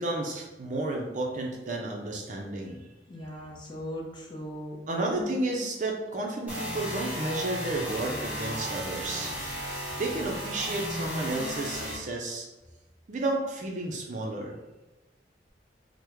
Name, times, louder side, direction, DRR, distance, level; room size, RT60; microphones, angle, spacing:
voice 1, 0.0-2.8 4.9-9.3 10.0-12.5 13.1-14.6, right 2 dB, 40° right, 0 dB, 0.4 m, -32 dB
voice 2, 3.1-5.4, equal, 25° left, -3 dB, 0.6 m, -39 dB
sound 1, 6.5-12.0, equal, 10° right, 0.8 m, -34 dB
3.4 x 2.0 x 3.0 m, 1.1 s
head